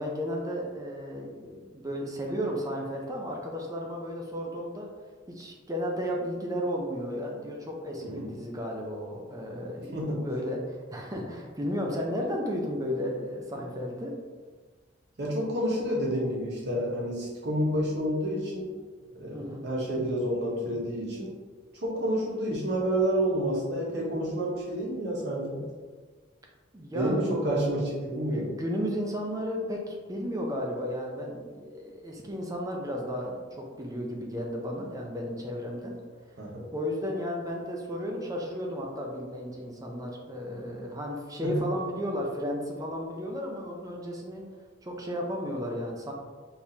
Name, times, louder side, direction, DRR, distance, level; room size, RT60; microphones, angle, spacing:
voice 1, 0.0-4.9 5.3-14.1 19.3-19.6 26.7-27.5 28.3-35.9 36.7-44.4 44.8-46.1, equal, 20° right, 0 dB, 0.5 m, -34 dB
voice 2, 9.9-10.3 15.2-18.7 19.1-21.3 21.8-25.6 26.9-28.5 36.4-36.7 41.4-41.6, right 1 dB, 60° right, -4 dB, 1.1 m, -29 dB
4.5 x 3.4 x 2.8 m, 1.4 s
head